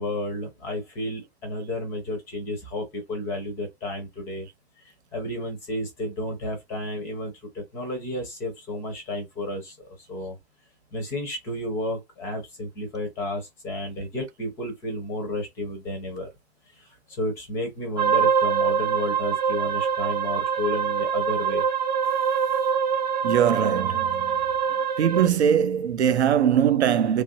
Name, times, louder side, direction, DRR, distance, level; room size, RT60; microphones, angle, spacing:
voice 1, 0.0-4.5 5.1-10.4 10.9-16.3 16.7-16.9 17.2-21.6, left 1 dB, 10° left, 0.5 m, -32 dB
sound 1, 18.0-25.3, right 7 dB, 45° right, 0.5 m, -24 dB
voice 2, 23.2-24.4 25.0-27.2, right 9 dB, 90° right, 0.6 m, -21 dB
3.1 x 2.5 x 2.7 m
hypercardioid pair, 155°, 32 cm